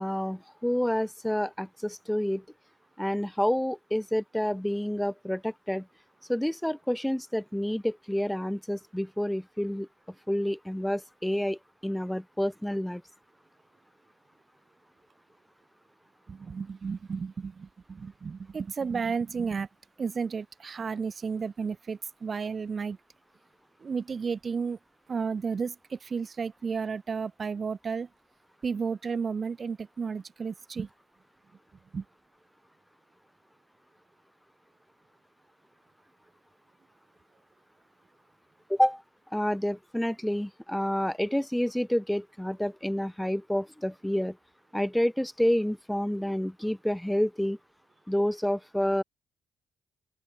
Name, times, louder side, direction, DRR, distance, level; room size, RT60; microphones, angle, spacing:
voice 1, 0.0-2.4 3.0-5.9 6.3-9.9 10.3-13.0 38.7-39.0 39.3-44.4 44.7-47.6 48.1-49.0, equal, 5° left, 0.9 m, -29 dB
voice 2, 16.3-19.7 20.0-23.0 23.8-24.8 25.1-28.1 28.6-30.9 31.9-32.0, right 5 dB, 40° right, 1.1 m, -32 dB
open air
cardioid pair, 90°, 0 cm